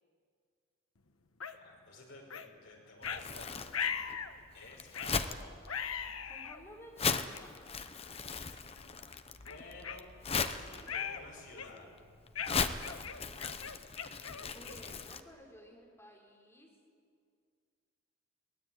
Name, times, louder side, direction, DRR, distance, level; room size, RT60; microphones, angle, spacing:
sound 1, 1.4-1.6 2.3-2.5 3.0-3.2 3.7-4.3 4.9-5.2 5.7-6.6 7.3-7.4 8.1-8.3 8.8-8.9 9.5-10.5 10.9-11.2 11.6-11.9 12.4-14.9, left 7 dB, 90° left, 1.3 m, -39 dB
voice 1, 1.5-3.8 4.5-5.6 9.4-10.1 10.4-11.9, left 2 dB, 65° left, -1 dB, 5.6 m, -53 dB
Crumpling crinkling, 3.0-15.2, left 5 dB, 30° left, 0.8 m, -38 dB
voice 2, 6.3-7.7 14.4-16.7, equal, 10° left, -2 dB, 4.7 m, -55 dB
23.0 x 19.0 x 9.3 m, 2.2 s
head